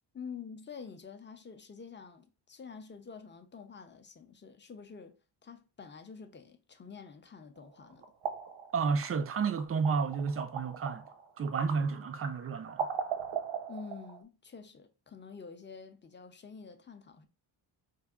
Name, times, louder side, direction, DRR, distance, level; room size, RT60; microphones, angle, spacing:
voice 1, 0.1-5.2 5.4-8.0 13.7-17.3, left 5 dB, 25° left, 0.5 m, -48 dB
sound 1, 7.6-14.2, right 7 dB, 80° right, 0.8 m, -39 dB
voice 2, 8.7-11.0 11.4-12.9, right 5 dB, 35° right, 0.4 m, -31 dB
4.6 x 2.5 x 2.3 m
cardioid pair, 85°, 47 cm